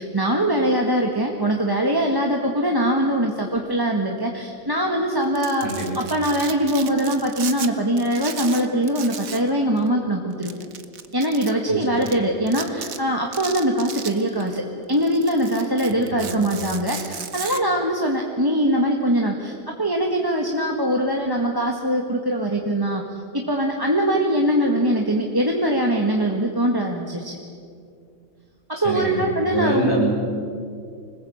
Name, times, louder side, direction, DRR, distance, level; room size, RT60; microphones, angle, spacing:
voice 1, 0.0-5.7 5.9-10.6 11.1-14.6 14.9-23.0 23.5-27.4 28.7-30.1, right 1 dB, 15° right, 0 dB, 1.8 m, -22 dB
Domestic sounds home sounds, 5.2-7.7 8.0-9.5 9.8-9.9 10.4-11.5 12.0-12.1 12.5-13.0 13.3-14.6 14.9-17.6, right 7 dB, 80° right, 1.7 m, -35 dB
voice 2, 28.8-29.2 29.5-30.1, right 1 dB, 40° left, -2 dB, 7.6 m, -25 dB
25.5 x 20.0 x 8.8 m, 2.3 s
omnidirectional pair, 1.4 m